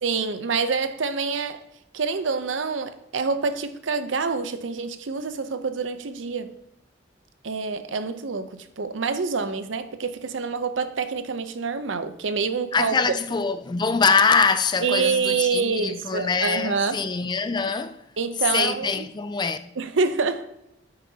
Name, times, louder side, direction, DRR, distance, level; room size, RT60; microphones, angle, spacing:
voice 1, 0.0-1.6 1.9-6.5 7.4-13.0 14.8-17.0 18.2-19.0 19.8-20.5, right 5 dB, 85° right, 0.7 m, -26 dB
voice 2, 12.7-18.0 18.5-19.6, left 5 dB, 25° left, 0.4 m, -23 dB
9.4 x 8.7 x 2.8 m
head